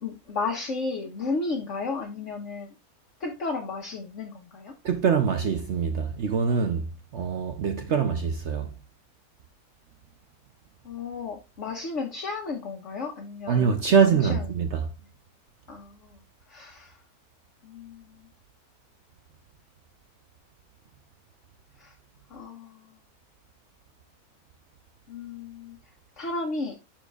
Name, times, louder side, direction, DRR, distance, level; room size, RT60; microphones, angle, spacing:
voice 1, 0.0-2.7 3.2-4.7 10.8-13.6 14.0-14.4 15.7-16.1 16.5-16.9 17.6-18.1 21.8-21.9 22.3-22.8 25.1-25.8 26.2-26.8, left 3 dB, 55° left, 1.4 m, -33 dB
voice 2, 4.8-6.9 7.1-8.7 13.5-14.9, right 6 dB, 55° right, 0.9 m, -24 dB
11.5 x 4.4 x 2.4 m
omnidirectional pair, 1.6 m